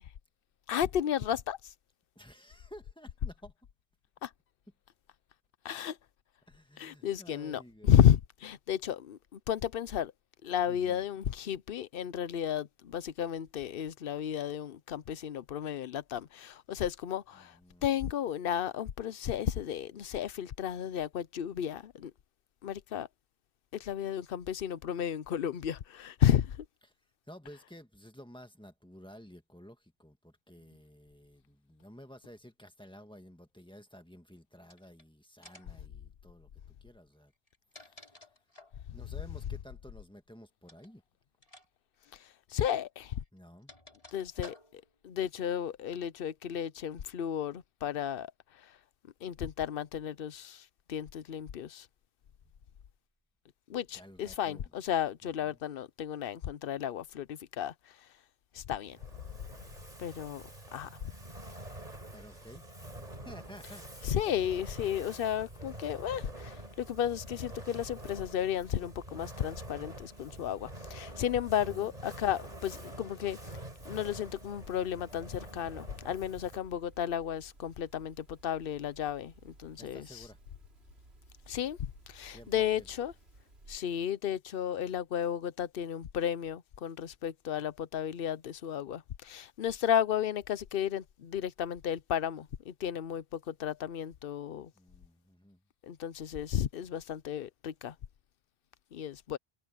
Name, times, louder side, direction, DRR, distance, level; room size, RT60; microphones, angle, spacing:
voice 1, 0.7-1.6 4.2-4.3 5.6-6.0 6.8-10.1 10.4-17.5 17.8-22.1 22.6-23.1 23.7-26.6 42.5-43.1 44.1-48.3 49.2-51.9 53.7-57.7 58.5-59.0 60.0-60.4 60.7-61.1 64.0-73.4 73.8-80.2 81.5-83.1 83.7-94.7 95.8-97.9 98.9-99.4, left 9 dB, 65° left, 0.9 m, -33 dB
voice 2, 2.1-3.5 6.5-8.0 10.7-11.0 17.3-17.9 26.8-26.9 27.3-36.5 36.8-37.3 37.7-38.2 38.9-41.0 43.3-43.7 53.9-54.7 55.2-55.6 62.1-63.9 71.7-72.0 79.8-80.4 82.3-82.9 94.7-95.6, equal, 5° left, 1.7 m, -53 dB
sound 1, 34.6-35.0 35.4-35.8 37.3-38.8 40.6-40.9 41.4-41.7 41.9-42.1 43.0-45.0, left 2 dB, 35° left, 4.5 m, -54 dB
Fire, 58.8-76.8, right 1 dB, 40° right, 4.7 m, -47 dB
sound 2, 73.4-83.8, right 2 dB, 80° right, 3.5 m, -58 dB
omnidirectional pair, 1.1 m